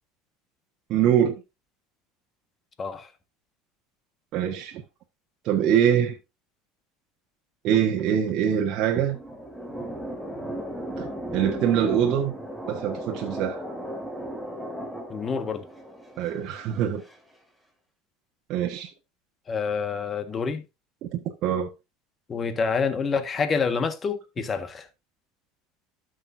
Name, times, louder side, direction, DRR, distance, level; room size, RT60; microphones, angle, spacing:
voice 1, 0.9-1.4 4.3-4.8 5.4-6.1 7.6-9.2 11.0-12.3 12.7-13.6 16.2-17.0 18.5-18.9 21.0-21.7, right 9 dB, 55° right, 1.3 m, -24 dB
sound 1, 8.7-17.2, equal, ahead, 2.3 m, -36 dB
voice 2, 15.1-15.7 19.5-20.6 22.3-24.9, left 5 dB, 30° left, 1.5 m, -27 dB
12.5 x 6.4 x 2.6 m
supercardioid pair, 100°, 0 cm